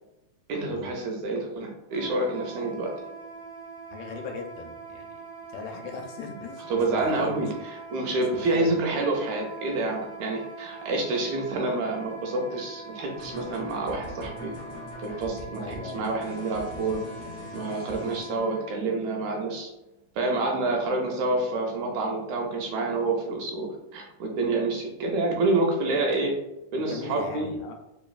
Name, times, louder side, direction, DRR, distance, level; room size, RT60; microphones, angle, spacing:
voice 1, 0.5-2.9 6.7-14.5 15.0-17.0 17.5-19.7 20.2-23.7 23.9-26.3 26.7-27.5, right 2 dB, 80° right, 1 dB, 1.9 m, -28 dB
Wind instrument woodwind instrument, 1.9-18.7, right 3 dB, 40° left, 0.8 m, -43 dB
voice 2, 3.9-5.2 5.5-7.5 8.3-8.9 15.6-16.1 26.8-27.7, left 5 dB, 85° left, 2 dB, 2.2 m, -39 dB
sound 1, 13.2-18.4, left 2 dB, 65° left, 1.5 m, -42 dB
4.6 x 3.0 x 2.3 m, 0.95 s
omnidirectional pair, 3.6 m